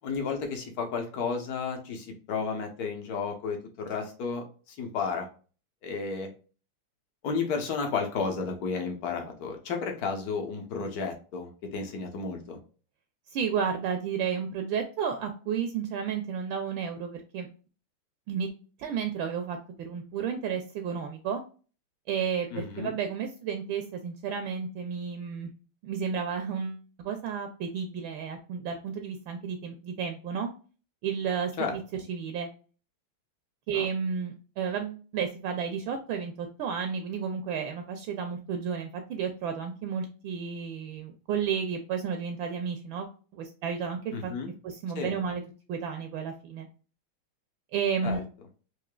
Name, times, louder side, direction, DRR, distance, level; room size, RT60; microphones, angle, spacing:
voice 1, 0.0-5.3 5.8-6.3 7.2-12.6 22.5-22.9 31.6-31.8 33.7-33.9 44.1-44.5 44.9-45.1 48.0-48.2, left 5 dB, 60° left, 3 dB, 1.0 m, -32 dB
voice 2, 13.3-17.5 18.3-18.5 18.8-21.4 22.1-25.5 25.8-30.5 31.0-31.8 32.1-32.5 33.7-44.3 44.6-45.4 45.7-46.7 47.7-48.2, right 7 dB, 75° right, 5 dB, 1.2 m, -32 dB
4.9 x 2.6 x 2.2 m, 0.37 s
omnidirectional pair, 2.4 m